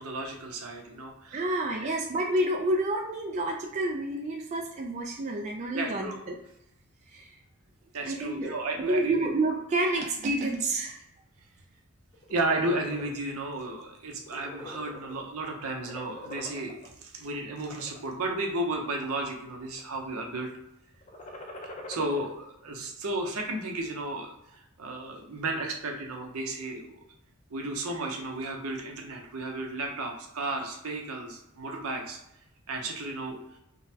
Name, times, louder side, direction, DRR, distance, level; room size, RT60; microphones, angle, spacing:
voice 1, 0.0-1.4 5.7-6.2 7.9-9.1 12.3-20.5 21.9-24.3 24.8-26.9 27.5-32.2 32.7-33.4, right 2 dB, 75° right, 1 dB, 0.7 m, -33 dB
voice 2, 1.3-6.4 7.1-7.4 8.0-11.0, right 1 dB, 35° right, 0 dB, 0.3 m, -29 dB
sound 1, 12.1-13.1 13.6-13.8 14.1-15.4 15.7-16.9 17.5-18.0 18.6-19.3 19.6-20.1 21.0-22.3, left 1 dB, 35° left, 0.5 m, -44 dB
3.7 x 2.1 x 2.8 m, 0.85 s
head